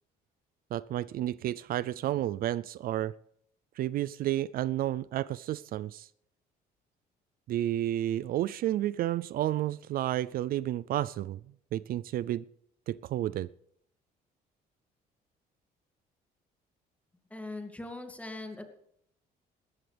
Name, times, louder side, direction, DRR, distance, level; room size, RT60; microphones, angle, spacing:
voice 1, 0.7-3.1 3.8-6.1 7.5-11.4 11.7-12.4 12.9-13.5, right 13 dB, 60° right, 18 dB, 0.4 m, -31 dB
voice 2, 17.3-18.6, left 2 dB, 10° left, 5 dB, 2.4 m, -40 dB
18.5 x 14.0 x 3.4 m, 0.73 s
cardioid pair, 110°, 17 cm